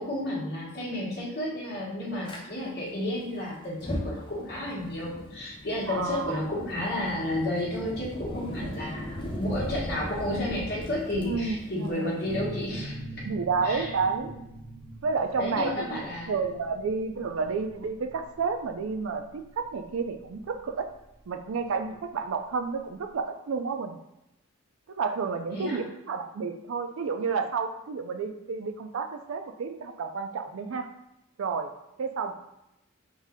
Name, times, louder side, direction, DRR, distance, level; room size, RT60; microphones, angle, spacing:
voice 1, 0.0-12.9 13.6-13.9 14.2-14.3 15.4-16.3 25.5-25.8, left 1 dB, 50° left, -5 dB, 1.3 m, -32 dB
Fire, 2.2-2.4 3.7-12.7, left 1 dB, 25° left, 0.6 m, -38 dB
voice 2, 5.9-6.4 8.6-8.9 11.3-12.2 13.2-14.3 15.0-20.9 21.3-24.0 24.9-30.9 31.4-31.7 32.0-32.3, right 5 dB, 75° right, 7 dB, 0.4 m, -31 dB
sound 1, 12.3-21.7, right 1 dB, 30° right, 0.7 m, -43 dB
3.5 x 2.7 x 3.5 m, 0.86 s
head